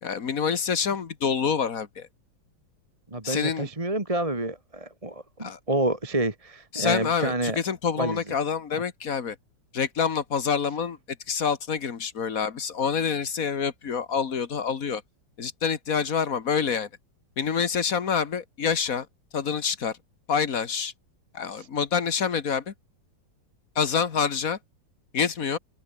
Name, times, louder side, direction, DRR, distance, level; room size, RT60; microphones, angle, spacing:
voice 1, 0.0-2.1 3.2-3.7 5.4-5.6 6.7-9.4 9.7-11.0 11.3-15.0 15.4-16.9 17.4-19.1 19.3-20.0 20.3-20.9 21.3-22.7 23.8-24.6 25.1-25.6, left 6 dB, 50° left, 1.9 m, -27 dB
voice 2, 3.1-7.6 8.0-8.2 21.6-21.7, right 2 dB, 20° right, 2.3 m, -28 dB
omnidirectional pair, 2.0 m